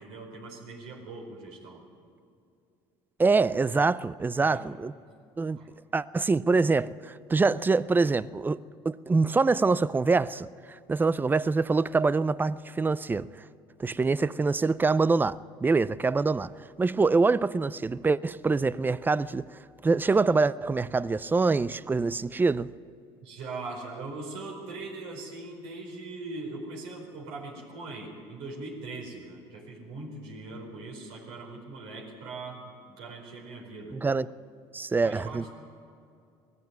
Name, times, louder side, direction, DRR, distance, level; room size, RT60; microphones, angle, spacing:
voice 1, 0.0-1.8 4.4-4.6 5.5-5.7 23.2-34.0 35.0-35.5, right 3 dB, 80° right, 4.9 m, -41 dB
voice 2, 3.2-4.9 5.4-5.6 5.9-8.6 8.8-13.3 13.8-16.5 16.8-19.5 19.8-22.7 33.9-34.3 34.7-35.5, right 4 dB, 15° right, 0.5 m, -25 dB
19.0 x 15.0 x 9.4 m
supercardioid pair, 95°, 11 cm